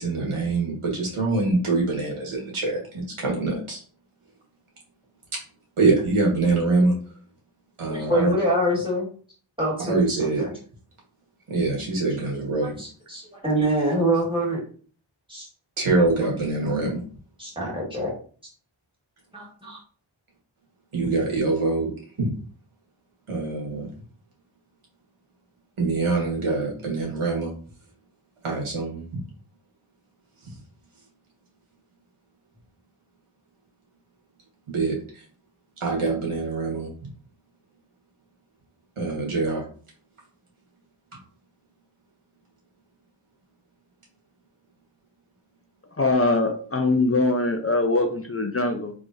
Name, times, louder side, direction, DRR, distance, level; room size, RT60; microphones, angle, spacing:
voice 1, 0.0-3.8 5.3-5.4 5.8-6.9 7.8-8.3 9.9-10.5 11.5-12.7 15.8-17.0 20.9-21.9 22.2-22.4 23.3-23.9 25.8-27.5 28.4-29.2 34.7-35.2 35.8-36.9 39.0-39.6, right 3 dB, 90° right, -2 dB, 1.4 m, -24 dB
voice 2, 7.9-9.1 9.6-10.0 10.4-10.5 12.8-14.6 15.3-15.5 17.4-18.1 19.3-19.8, right 1 dB, 10° right, -3 dB, 1.9 m, -25 dB
voice 3, 46.0-48.9, left 2 dB, 30° left, 4 dB, 0.5 m, -22 dB
3.7 x 3.0 x 2.6 m, 0.43 s
wide cardioid pair, 45°, 49 cm